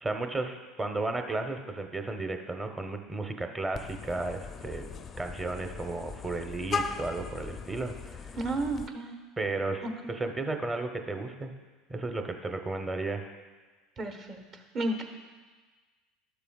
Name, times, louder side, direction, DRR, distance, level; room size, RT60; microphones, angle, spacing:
voice 1, 0.0-4.9 5.2-8.3 9.4-11.5 11.9-13.3, right 3 dB, 20° right, 5 dB, 0.8 m, -34 dB
Vehicle horn car horn honking, 3.7-8.9, left 5 dB, 35° left, 0.4 m, -38 dB
voice 2, 8.3-9.1 9.8-9.9 14.0-15.0, right 2 dB, 45° right, 5 dB, 1.1 m, -32 dB
12.0 x 6.8 x 2.4 m, 1.4 s
hypercardioid pair, 90°, 0 cm